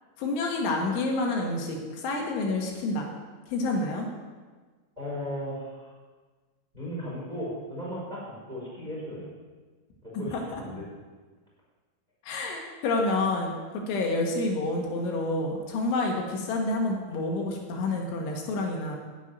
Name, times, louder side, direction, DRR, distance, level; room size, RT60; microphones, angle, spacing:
voice 1, 0.2-3.1 3.5-4.1 10.3-10.6 12.2-19.0, left 2 dB, 75° left, 1 dB, 3.8 m, -28 dB
voice 2, 5.0-5.9 6.7-9.3 10.0-10.8, equal, 10° right, -6 dB, 4.2 m, -36 dB
10.0 x 8.2 x 9.3 m, 1.4 s
omnidirectional pair, 5.6 m